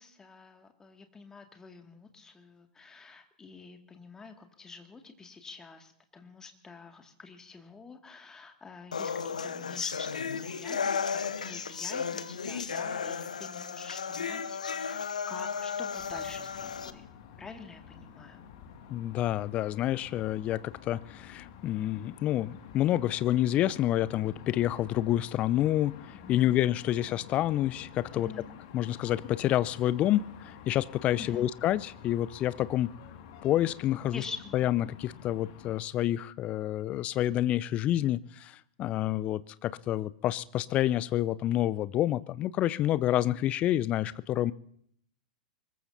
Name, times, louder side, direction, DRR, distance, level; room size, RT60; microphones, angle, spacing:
voice 1, 0.0-17.0 17.4-18.4 26.1-26.6 28.1-28.5 31.2-31.5 34.1-34.8, left 4 dB, 15° left, 5 dB, 2.1 m, -47 dB
sound 1, 8.9-16.9, left 6 dB, 70° left, 1.0 m, -34 dB
sound 2, 16.0-35.8, left 8 dB, 50° left, 2.1 m, -50 dB
voice 2, 18.9-25.9 26.3-28.3 28.7-32.9 33.4-34.2 34.5-44.5, left 13 dB, 30° left, 18 dB, 0.6 m, -28 dB
24.5 x 21.5 x 2.8 m, 0.66 s
figure-of-eight pair, 95°, 4 cm